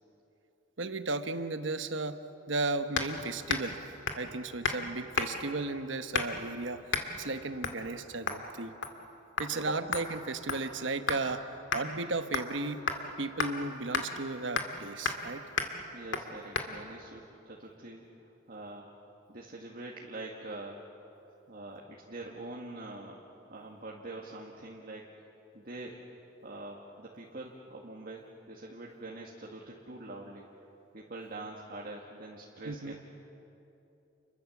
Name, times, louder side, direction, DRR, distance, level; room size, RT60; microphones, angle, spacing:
voice 1, 0.8-2.2 2.5-3.8 4.1-8.7 9.4-11.4 11.7-12.8 13.2-15.4 32.6-32.9, right 3 dB, 75° right, 9 dB, 1.2 m, -35 dB
sound 1, 3.0-3.2 3.5-3.7 4.1-4.3 4.6-4.8 5.2-5.5 6.1-6.5 6.9-7.1 7.6-7.8 8.3-8.5 8.8-9.1 9.4-9.5 9.9-11.3 11.7-11.8 12.3-12.6 12.9-13.0 13.4-13.5 13.9-14.1 14.6-14.8 15.1-15.3 15.6-15.7 16.1-16.3 16.6-16.7, left 4 dB, 75° left, 2.2 m, -32 dB
voice 2, 15.9-18.9 19.3-20.8 21.2-23.2 23.5-25.1 25.5-26.0 26.4-30.5 30.9-33.0, right 2 dB, 50° right, -2 dB, 2.0 m, -44 dB
30.0 x 23.0 x 7.3 m, 2.9 s
head